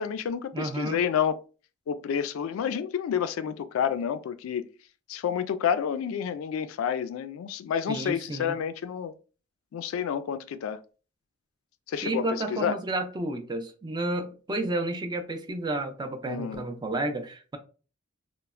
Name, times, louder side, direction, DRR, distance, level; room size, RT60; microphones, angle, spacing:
voice 1, 0.0-1.4 1.9-4.6 5.1-9.1 9.7-10.8 11.9-12.3 12.5-12.7 16.3-16.6, left 8 dB, 75° left, 0.3 m, -29 dB
voice 2, 0.5-1.0 7.9-8.5 12.0-17.6, right 2 dB, 20° right, 0.4 m, -31 dB
3.1 x 2.0 x 2.3 m
head